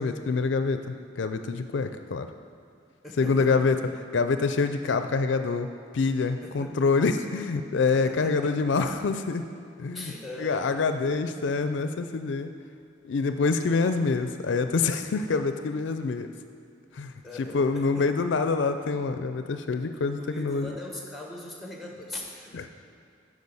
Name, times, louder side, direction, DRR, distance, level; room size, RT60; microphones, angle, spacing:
voice 1, 0.0-2.3 3.2-5.7 5.9-9.5 9.8-10.1 10.4-12.5 13.0-16.3 16.9-17.1 17.4-20.8 22.5-22.6, left 4 dB, 70° left, 8 dB, 0.4 m, -26 dB
voice 2, 3.0-3.7 6.4-6.8 7.9-8.5 9.9-11.2 17.2-18.3 20.2-22.7, left 1 dB, ahead, -1 dB, 1.2 m, -41 dB
10.5 x 5.0 x 5.4 m, 2.6 s
head